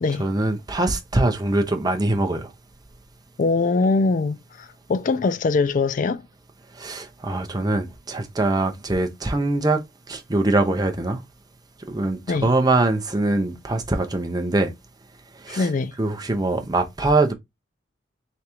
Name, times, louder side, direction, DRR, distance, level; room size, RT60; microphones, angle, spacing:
voice 1, 0.2-2.5 6.7-9.8 10.1-11.2 11.9-14.7 15.4-15.7 16.0-17.3, right 2 dB, 20° right, 0.6 m, -23 dB
voice 2, 3.4-4.4 4.9-6.2 12.3-12.5 15.5-15.9, left 3 dB, 40° left, 0.3 m, -22 dB
3.8 x 3.4 x 2.9 m
head